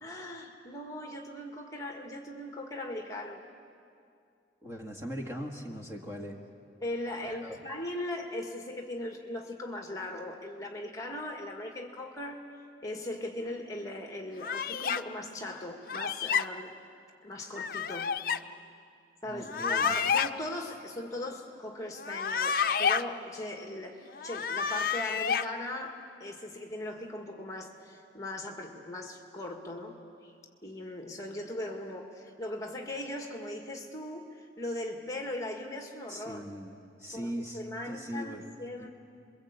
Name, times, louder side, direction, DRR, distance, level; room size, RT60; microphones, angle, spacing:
voice 1, 0.0-3.5 6.8-12.4 12.8-16.7 17.2-18.2 19.2-24.0 24.2-30.0 30.2-30.3 30.6-36.4 37.1-38.9, left 1 dB, 20° left, 2 dB, 1.9 m, -39 dB
voice 2, 4.6-6.4 7.2-7.6 19.2-19.9 36.1-36.7 37.0-38.4 38.8-38.9, equal, 15° right, 0 dB, 1.8 m, -40 dB
sound 1, 14.4-15.0 15.9-16.4 17.6-18.4 19.4-20.3 22.0-23.0 24.2-25.5, left 6 dB, 50° left, 0.6 m, -29 dB
29.5 x 22.5 x 8.2 m, 2.4 s
head